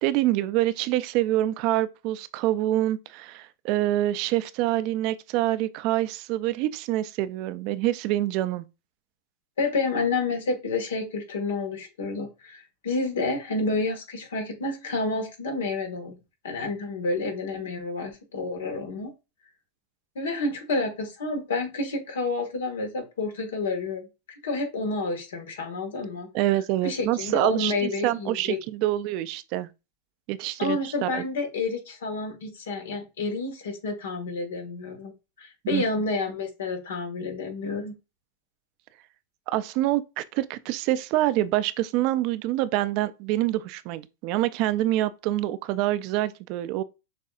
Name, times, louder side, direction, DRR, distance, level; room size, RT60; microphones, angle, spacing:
voice 1, 0.0-8.7 26.3-29.7 30.3-31.2 35.7-35.8 39.5-46.8, right 15 dB, 55° right, 0.4 m, -26 dB
voice 2, 9.6-16.1 16.4-19.1 20.1-24.0 24.4-26.3 26.8-28.6 30.6-35.1 35.4-37.9, left 3 dB, 85° left, 1.4 m, -29 dB
6.4 x 2.7 x 2.4 m
hypercardioid pair, 115°, 0 cm